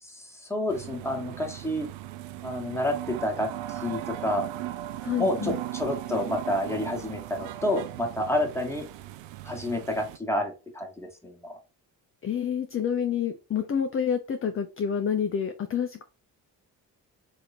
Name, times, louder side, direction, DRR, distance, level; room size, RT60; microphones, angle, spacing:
voice 1, 0.0-1.9 2.4-4.4 5.2-8.9 9.4-11.5, left 1 dB, 5° left, 2 dB, 1.3 m, -29 dB
sound 1, 0.7-10.2, right 13 dB, 60° right, 0.5 m, -38 dB
voice 2, 5.0-5.6 12.2-16.0, left 8 dB, 30° left, 7 dB, 0.5 m, -28 dB
2.8 x 2.6 x 4.1 m, 0.31 s
hypercardioid pair, 45°, 49 cm